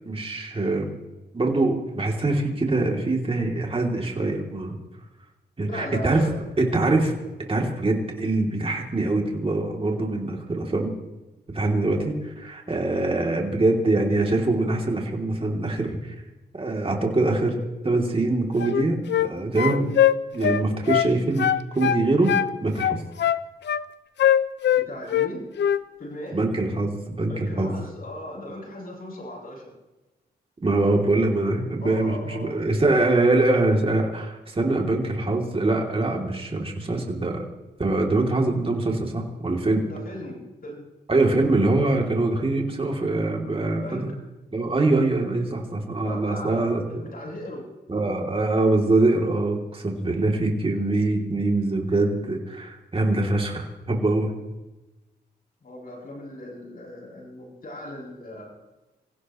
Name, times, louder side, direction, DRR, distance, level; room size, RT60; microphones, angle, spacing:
voice 1, 0.0-0.9 1.3-4.8 5.6-6.3 6.6-7.1 7.5-11.0 11.5-16.1 16.6-17.6 17.8-19.9 20.3-21.5 21.7-23.0 26.3-27.8 30.6-37.5 37.8-39.9 41.1-44.1 44.5-46.8 47.9-54.3, right 2 dB, 30° right, 0 dB, 3.2 m, -23 dB
voice 2, 5.6-6.4 24.7-25.6 26.0-26.4 27.3-29.7 31.8-32.6 39.9-40.8 43.7-44.2 46.0-47.7 55.6-58.5, left 1 dB, 55° left, -2 dB, 7.8 m, -37 dB
sound 1, 18.6-19.3 19.6-21.1 21.4-22.5 22.8-23.8 24.2-25.3 25.6-25.8, left 10 dB, 75° left, 0.6 m, -21 dB
26.5 x 16.0 x 3.2 m, 1.1 s
cardioid pair, 75°, 18 cm